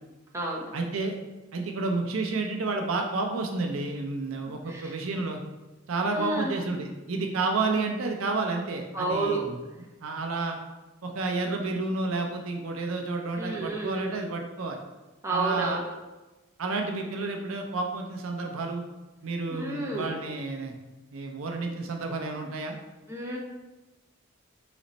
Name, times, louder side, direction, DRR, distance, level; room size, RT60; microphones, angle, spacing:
voice 1, 0.7-1.1 1.5-5.4 5.9-9.6 10.0-10.6 11.0-14.8 15.3-15.8 16.6-18.8 19.2-20.7 21.1-22.7, right 3 dB, 75° right, 3 dB, 0.5 m, -30 dB
voice 2, 4.7-5.0 6.1-6.6 8.9-9.4 13.4-14.1 15.2-15.9 19.5-20.2 23.1-23.4, right 2 dB, 15° right, -3 dB, 0.7 m, -30 dB
4.1 x 3.0 x 4.0 m, 1.1 s
head